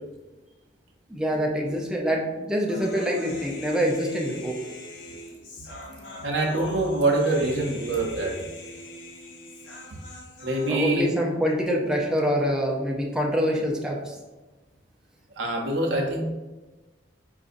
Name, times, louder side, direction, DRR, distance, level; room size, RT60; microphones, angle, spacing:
voice 1, 1.1-4.6 10.7-14.2, equal, 5° right, -1 dB, 0.4 m, -25 dB
Human voice, 2.7-10.7, left 1 dB, 80° left, 0.6 m, -42 dB
voice 2, 6.2-8.3 10.4-11.0 15.4-16.2, right 2 dB, 80° right, 1 dB, 0.7 m, -24 dB
4.7 x 2.6 x 2.5 m, 1.2 s
head